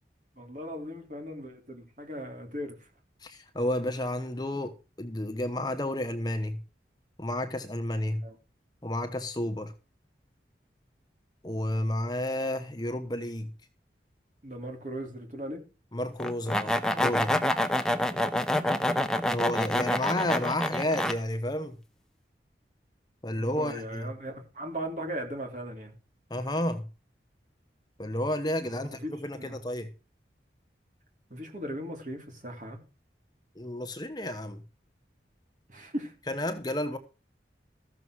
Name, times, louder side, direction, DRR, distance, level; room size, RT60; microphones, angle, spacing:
voice 1, 0.4-2.9 8.2-8.4 14.4-15.6 17.9-18.3 19.0-19.4 23.3-26.0 28.6-29.6 31.3-32.8 35.7-36.1, equal, 45° right, 3.2 m, -38 dB
voice 2, 3.2-6.6 7.2-8.2 8.8-9.7 11.4-13.5 15.9-17.4 19.3-21.7 23.2-24.1 26.3-26.9 28.0-29.9 33.6-34.6 36.3-37.0, left 1 dB, 25° left, 1.0 m, -31 dB
sound 1, 16.2-21.1, left 1 dB, 5° left, 0.8 m, -27 dB
14.0 x 6.8 x 6.2 m
head